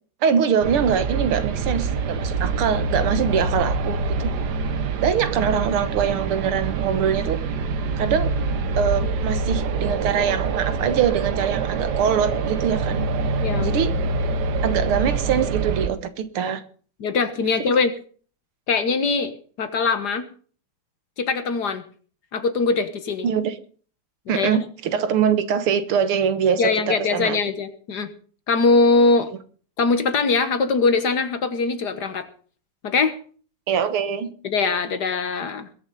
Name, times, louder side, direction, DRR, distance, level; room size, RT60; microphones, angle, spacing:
voice 1, 0.2-4.3 5.0-7.4 8.0-8.3 8.7-13.1 13.6-13.9 14.6-16.6 17.7-17.8 23.2-23.5 24.3-27.4 33.7-34.3, right 7 dB, 85° right, 12 dB, 2.1 m, -23 dB
sound 1, 0.6-15.9, right 4 dB, 55° right, 1.5 m, -25 dB
voice 2, 13.4-13.8 17.0-17.9 18.7-20.3 21.2-21.8 22.3-23.3 24.3-24.7 26.6-28.1 28.5-29.3 29.8-32.3 32.8-33.2 34.4-35.7, left 4 dB, 55° left, 10 dB, 1.7 m, -22 dB
21.5 x 7.4 x 5.4 m, 0.43 s
omnidirectional pair, 2.4 m